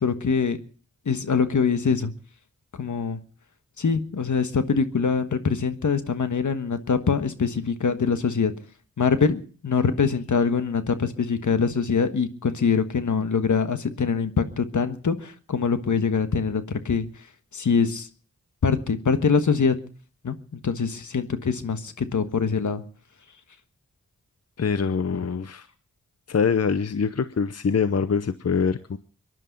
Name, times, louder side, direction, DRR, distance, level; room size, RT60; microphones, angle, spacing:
voice 1, 0.0-0.6 1.0-2.1 2.8-3.2 3.8-8.5 9.0-17.1 17.5-18.1 18.6-19.7 20.2-22.8, left 5 dB, 80° left, 10 dB, 1.4 m, -24 dB
voice 2, 24.6-25.7 26.3-29.0, left 6 dB, 55° left, 13 dB, 0.8 m, -24 dB
23.5 x 11.0 x 5.3 m, 0.41 s
wide cardioid pair, 60°, 30 cm